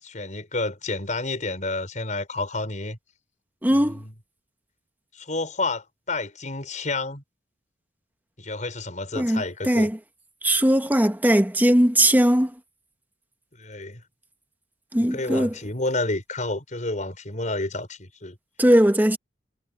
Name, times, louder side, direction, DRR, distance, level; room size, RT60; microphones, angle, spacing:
voice 1, 0.0-3.0 3.7-4.1 5.1-7.2 8.4-9.9 13.6-14.0 15.1-18.4, left 2 dB, 45° left, 5.6 m, -30 dB
voice 2, 3.6-4.0 9.2-9.9 10.4-12.5 14.9-15.5 18.6-19.2, right 1 dB, 10° right, 1.4 m, -19 dB
head